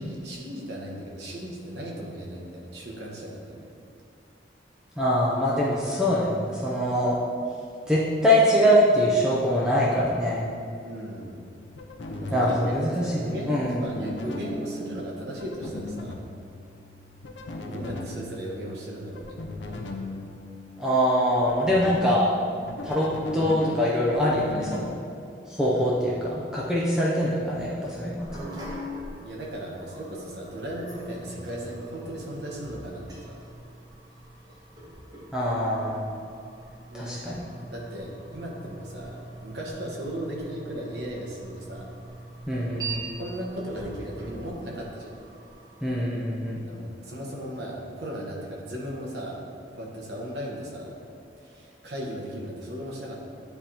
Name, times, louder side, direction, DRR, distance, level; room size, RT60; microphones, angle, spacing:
voice 1, 0.0-3.7 10.8-11.4 12.2-12.6 13.0-16.2 17.7-19.3 25.7-26.0 29.2-33.4 36.9-37.4 37.7-41.9 43.2-45.1 46.6-49.4 49.7-50.9 51.4-53.2, right 1 dB, 70° right, -3 dB, 1.1 m, -36 dB
voice 2, 5.0-7.2 7.9-10.5 12.3-13.8 20.8-22.3 22.8-25.0 25.5-28.5 35.3-36.0 36.9-37.4 42.5-43.1 45.8-46.6, equal, 5° right, -6 dB, 0.5 m, -24 dB
sound 1, 11.4-24.9, left 2 dB, 85° left, 0.6 m, -38 dB
sound 2, 28.2-46.0, right 2 dB, 20° right, 0.9 m, -43 dB
9.8 x 3.5 x 2.8 m, 2.5 s
head